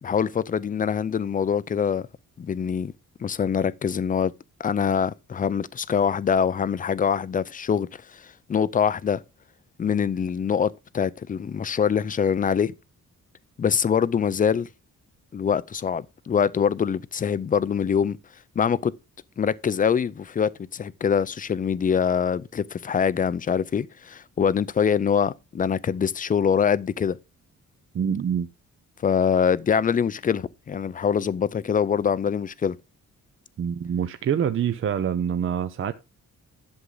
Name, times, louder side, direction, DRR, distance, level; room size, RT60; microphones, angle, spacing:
voice 1, 0.0-2.0 2.4-2.9 3.2-4.3 4.6-8.2 8.5-9.2 9.8-12.7 13.6-14.7 15.3-18.2 18.6-18.9 19.4-27.2 29.0-32.8, left 7 dB, 25° left, 0.4 m, -24 dB
voice 2, 27.9-28.5 33.6-35.9, right 8 dB, 40° right, 0.6 m, -25 dB
11.5 x 7.3 x 3.9 m
wide cardioid pair, 175°, 32 cm